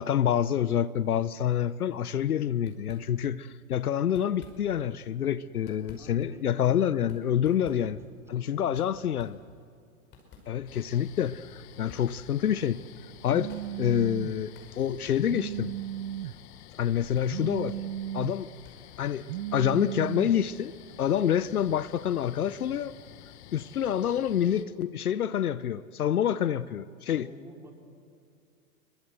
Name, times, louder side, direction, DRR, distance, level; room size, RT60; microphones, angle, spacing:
voice 1, 0.0-8.0 8.3-9.4 10.5-12.8 13.2-13.5 13.8-15.7 16.8-17.8 18.1-18.5 19.0-20.7 21.0-22.9 23.5-27.3, left 9 dB, 75° left, 0.9 m, -27 dB
sound 1, 2.6-3.5 4.0-5.0 5.4-20.3, left 4 dB, 25° left, 5.5 m, -55 dB
voice 2, 6.0-6.8 7.6-8.0 8.3-8.8 26.1-26.2 27.0-27.7, right 1 dB, 5° right, 4.8 m, -49 dB
sound 2, 10.7-24.7, left 11 dB, 45° left, 1.5 m, -50 dB
Telephone, 13.3-14.3 15.3-16.3 17.3-18.3 19.3-20.3, right 12 dB, 55° right, 0.6 m, -35 dB
27.5 x 23.5 x 8.0 m
hypercardioid pair, 110°, 44 cm